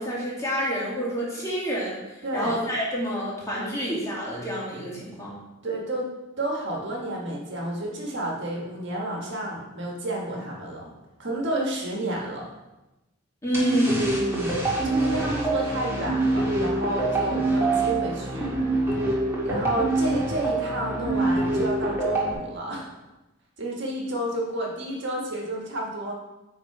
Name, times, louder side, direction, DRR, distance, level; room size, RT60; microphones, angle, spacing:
voice 1, 0.0-5.4 13.4-14.2, equal, 15° left, -6 dB, 2.3 m, -28 dB
voice 2, 2.2-2.5 5.6-6.1 6.4-10.9 11.2-12.5 14.1-14.6 14.8-18.5 19.5-22.9 23.6-26.1, right 1 dB, 60° right, -2 dB, 1.6 m, -30 dB
sound 1, 13.5-22.3, right 2 dB, 15° right, 1.8 m, -25 dB
9.2 x 3.8 x 4.9 m, 1.0 s
head